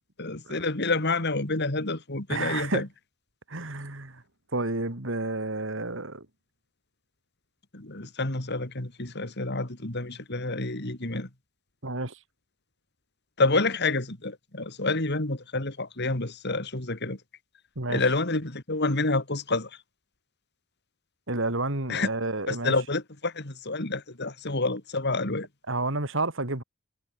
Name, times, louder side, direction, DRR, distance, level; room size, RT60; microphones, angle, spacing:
voice 1, 0.2-2.9 7.7-11.3 13.4-17.2 17.9-19.7 21.9-22.1 22.5-25.5, left 3 dB, 55° left, 3.1 m, -28 dB
voice 2, 2.3-2.8 3.5-4.2 4.5-6.3 11.8-12.2 17.8-18.0 21.3-22.7 25.7-26.6, right 2 dB, 65° right, 3.6 m, -30 dB
head